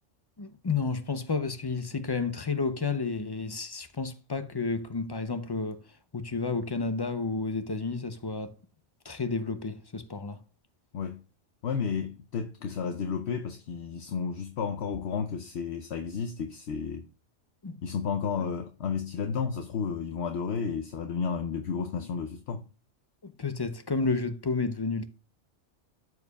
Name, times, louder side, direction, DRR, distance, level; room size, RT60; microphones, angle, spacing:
voice 1, 0.4-5.8 6.1-8.5 9.0-10.4 17.6-17.8 23.2-25.1, left 4 dB, 30° left, 0.5 m, -31 dB
voice 2, 11.6-17.1 17.8-22.6, left 6 dB, 70° left, 0.9 m, -32 dB
12.5 x 4.8 x 2.2 m
omnidirectional pair, 1.2 m